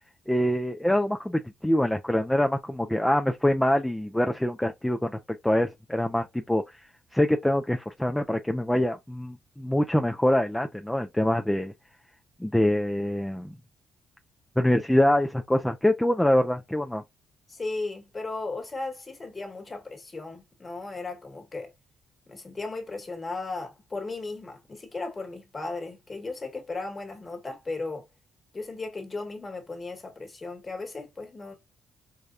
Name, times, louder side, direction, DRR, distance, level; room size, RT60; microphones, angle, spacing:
voice 1, 0.3-5.2 5.4-6.8 7.1-11.7 12.4-13.5 14.6-17.0, left 1 dB, 5° left, 0.4 m, -25 dB
voice 2, 17.5-21.7 22.3-28.0 28.5-31.5, left 3 dB, 30° left, 1.4 m, -36 dB
4.8 x 2.2 x 2.6 m
cardioid pair, 90°, 0 cm